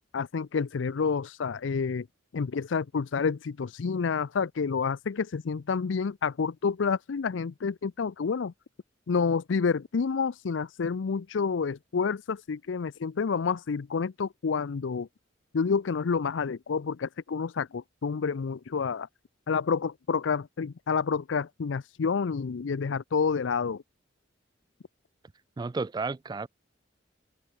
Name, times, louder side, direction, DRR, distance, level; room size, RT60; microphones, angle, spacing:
voice 1, 0.1-2.1 2.3-8.5 9.1-15.1 15.5-19.1 19.5-23.8, left 5 dB, 80° left, 0.5 m, -29 dB
voice 2, 25.6-26.5, right 4 dB, 20° right, 0.3 m, -32 dB
open air
head